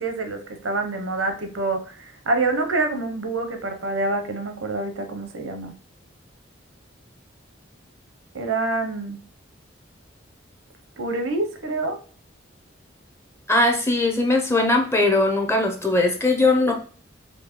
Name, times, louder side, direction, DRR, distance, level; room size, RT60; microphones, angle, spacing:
voice 1, 0.0-5.7 8.3-9.2 11.0-12.0, right 2 dB, 85° right, 6 dB, 0.7 m, -26 dB
voice 2, 13.5-16.7, left 2 dB, 15° left, 3 dB, 0.6 m, -20 dB
4.4 x 2.7 x 3.0 m, 0.42 s
head